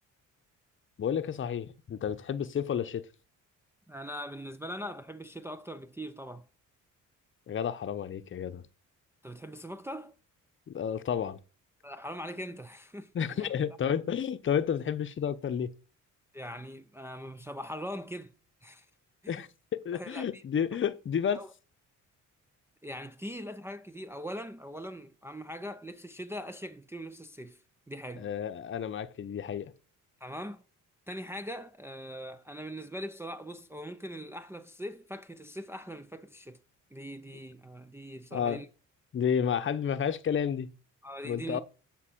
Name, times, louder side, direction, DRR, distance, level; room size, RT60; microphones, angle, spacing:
voice 1, 1.0-3.0 7.5-8.6 10.7-11.4 13.1-15.7 19.3-21.4 28.1-29.7 38.3-38.6 39.1-40.7 41.2-41.6, left 8 dB, 40° left, 0.9 m, -31 dB
voice 2, 3.9-6.4 9.2-10.1 11.8-13.1 13.4-13.5 16.3-18.3 18.6-18.9 19.2-19.5 19.9-20.4 21.3-21.5 22.8-27.6 27.9-28.3 30.2-30.6 31.1-36.6 36.9-38.7 41.0-41.6, equal, 10° right, 0.5 m, -41 dB
8.3 x 6.0 x 7.6 m
cardioid pair, 125°, 32 cm